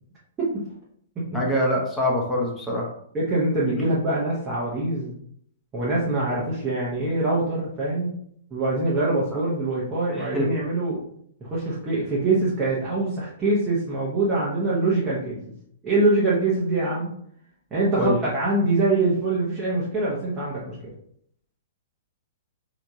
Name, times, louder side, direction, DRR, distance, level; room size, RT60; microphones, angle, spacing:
voice 1, 1.3-2.9 9.3-9.4 10.1-10.5 18.0-18.1, left 1 dB, 5° left, -4 dB, 0.9 m, -24 dB
voice 2, 3.1-5.1 5.7-8.1 8.5-11.0 11.4-15.4 15.8-17.1 17.7-20.8, right 2 dB, 20° right, -8 dB, 1.1 m, -24 dB
3.4 x 2.9 x 2.7 m, 0.67 s
figure-of-eight pair, 110°, 0 cm